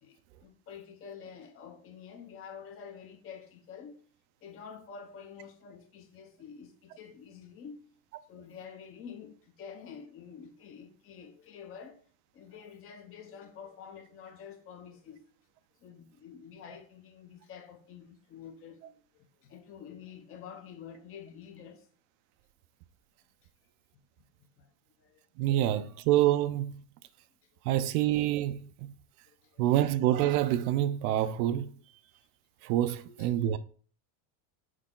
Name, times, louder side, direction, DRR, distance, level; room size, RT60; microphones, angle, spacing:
voice 1, 0.0-4.0 4.4-7.8 8.3-12.0 12.3-15.2 15.8-21.9 24.6-24.7 25.0-25.5 29.3-29.6 33.1-33.3, left 7 dB, 30° left, 0.7 m, -48 dB
voice 2, 25.4-26.8 27.6-28.9 29.6-31.7 32.6-33.6, right 13 dB, 80° right, 0.7 m, -27 dB
6.5 x 4.9 x 3.7 m
cardioid pair, 170°, 44 cm